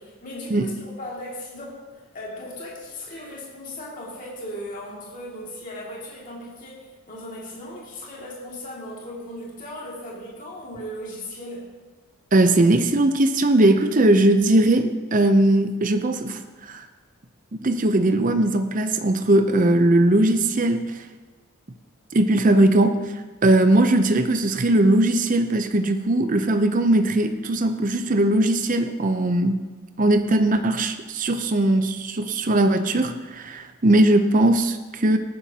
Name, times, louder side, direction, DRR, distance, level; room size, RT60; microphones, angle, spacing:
voice 1, 0.0-11.8, left 1 dB, 35° left, -4 dB, 2.3 m, -37 dB
voice 2, 12.3-16.8 17.6-21.0 22.1-23.1 23.4-29.6 30.0-35.2, right 1 dB, 35° right, 8 dB, 0.6 m, -19 dB
18.0 x 9.9 x 2.8 m, 1.3 s
head